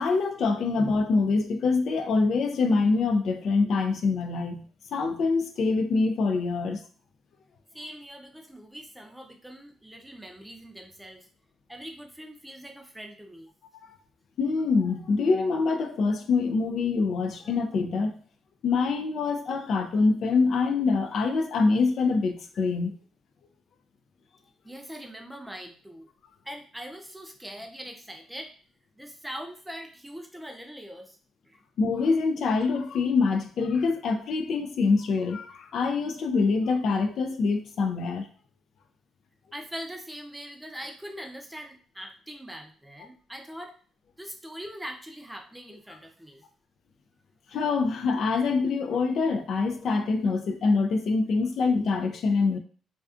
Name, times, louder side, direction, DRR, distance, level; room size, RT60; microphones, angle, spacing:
voice 1, 0.0-4.6 4.9-6.8 14.4-18.2 18.6-22.9 31.8-38.3 47.5-52.6, left 4 dB, 65° left, 0.3 m, -25 dB
voice 2, 7.7-11.3 11.7-13.5 24.6-26.1 26.4-28.5 29.0-31.2 31.5-31.6 39.5-43.7 44.2-46.4, equal, 5° right, 0.5 m, -42 dB
2.4 x 2.3 x 2.4 m
cardioid pair, 90°, 0 cm